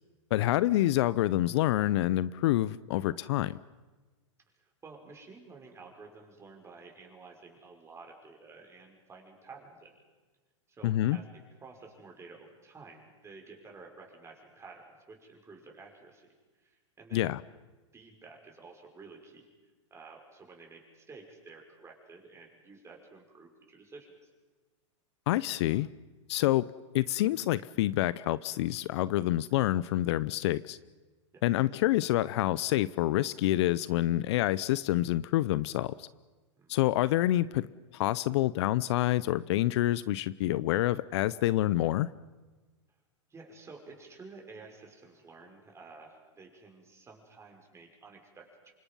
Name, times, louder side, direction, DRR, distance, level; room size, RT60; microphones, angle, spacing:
voice 1, 0.3-3.6 10.8-11.2 17.1-17.4 25.3-25.9 26.3-26.7 26.9-30.8 31.4-36.1 36.7-37.7 37.9-42.1, left 15 dB, 60° left, 18 dB, 0.6 m, -27 dB
voice 2, 4.5-10.0 10.7-11.3 11.6-16.3 16.6-17.3 17.9-19.5 19.9-24.3 31.3-31.5 36.6-36.8 43.3-48.7, right 4 dB, 15° right, 1 dB, 5.9 m, -51 dB
28.0 x 25.0 x 5.6 m, 1.3 s
hypercardioid pair, 115°, 16 cm